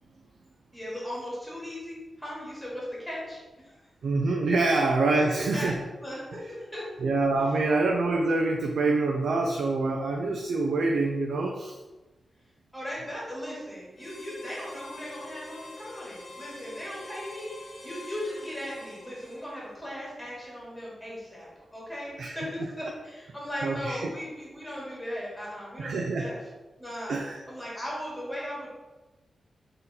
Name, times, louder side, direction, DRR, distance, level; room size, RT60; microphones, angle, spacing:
voice 1, 0.7-3.8 5.1-6.9 7.4-7.5 12.7-26.4 26.8-27.2 27.5-28.7, equal, 5° left, -6 dB, 1.3 m, -38 dB
voice 2, 4.0-5.8 7.0-11.8 22.2-22.4 23.6-24.1 25.8-26.3 27.1-27.4, right 3 dB, 75° right, 1 dB, 0.4 m, -26 dB
Harmonica, 13.9-19.9, left 2 dB, 80° left, 1.1 m, -45 dB
3.9 x 2.8 x 3.9 m, 1.1 s
wide cardioid pair, 160°, 0 cm